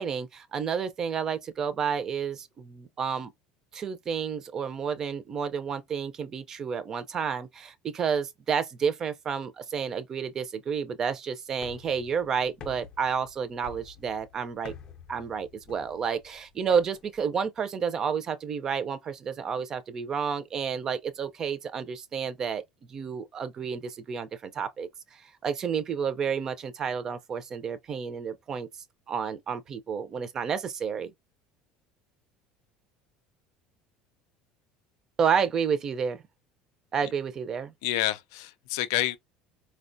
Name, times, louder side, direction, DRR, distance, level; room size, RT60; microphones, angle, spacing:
voice 1, 0.0-3.3 3.7-14.7 15.1-22.6 22.9-28.7 29.1-31.1 35.2-36.2 36.9-37.7, right 6 dB, 25° right, 0.4 m, -30 dB
sound 1, 11.6-17.2, left 6 dB, 35° left, 0.5 m, -49 dB
voice 2, 37.8-39.2, left 14 dB, 90° left, 0.4 m, -28 dB
4.3 x 2.1 x 2.5 m
cardioid pair, 170°, 2 cm